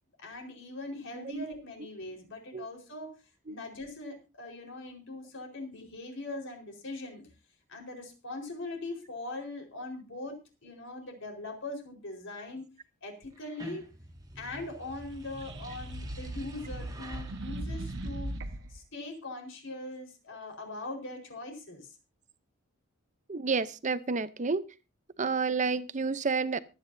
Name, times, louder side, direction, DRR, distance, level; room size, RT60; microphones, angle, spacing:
voice 1, 0.2-3.1 3.5-7.2 7.7-10.4 10.6-12.6 13.0-13.9 14.3-18.3 18.7-21.9, left 2 dB, 60° left, 4.6 m, -41 dB
voice 2, 1.1-1.4 2.5-2.7 3.5-3.6 23.3-24.6 25.2-26.6, right 4 dB, 35° right, 0.8 m, -30 dB
sound 1, 13.4-18.7, right 1 dB, 20° right, 1.6 m, -48 dB
sound 2, 15.1-18.8, right 1 dB, 60° right, 1.3 m, -38 dB
24.0 x 9.5 x 2.7 m
head